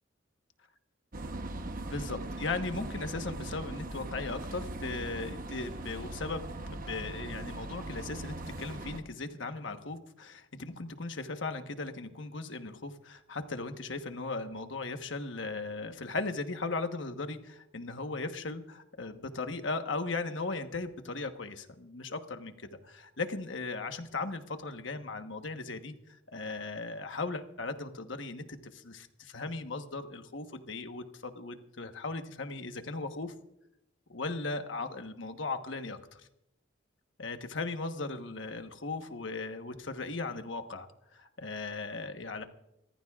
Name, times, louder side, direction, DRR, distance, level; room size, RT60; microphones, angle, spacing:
sound 1, 1.1-9.0, right 2 dB, 45° right, 1.0 m, -40 dB
voice 1, 1.9-6.4 6.7-33.3 34.1-36.2 37.2-42.4, left 3 dB, 70° left, 7 dB, 1.2 m, -37 dB
26.5 x 14.5 x 2.4 m, 0.85 s
head